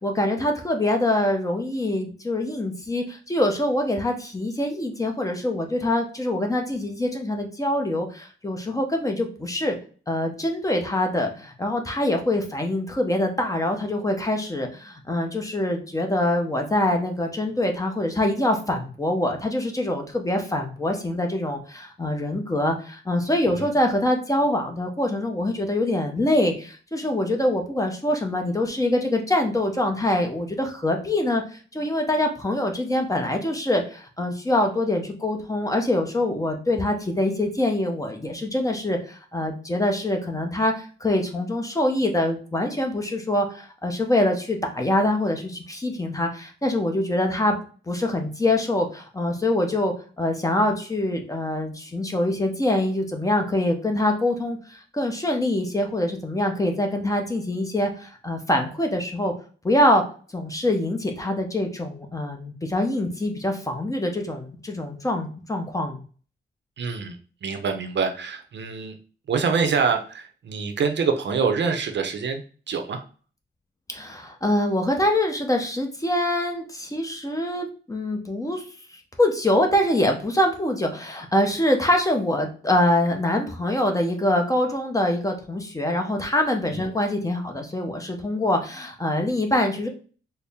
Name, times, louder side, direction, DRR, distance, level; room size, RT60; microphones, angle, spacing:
voice 1, 0.0-9.8 10.1-47.6 47.9-59.3 59.6-60.0 60.3-66.0 73.9-78.6 79.2-89.9, left 1 dB, 15° left, 3 dB, 0.6 m, -24 dB
voice 2, 66.8-68.9 69.3-73.0 86.7-86.9, right 5 dB, 65° right, 5 dB, 0.6 m, -26 dB
4.2 x 2.0 x 3.5 m, 0.39 s
wide cardioid pair, 125°, 20 cm